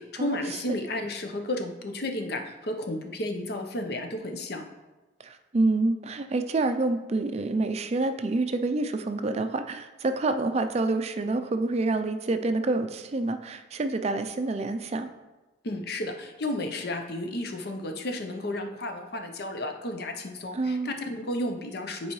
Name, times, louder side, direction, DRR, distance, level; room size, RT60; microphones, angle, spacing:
voice 1, 0.0-4.7 15.6-22.1, left 1 dB, 55° left, 4 dB, 0.7 m, -32 dB
voice 2, 5.2-15.1 20.5-20.9, right 2 dB, 35° right, 8 dB, 0.4 m, -27 dB
10.0 x 4.6 x 3.1 m, 1.2 s
head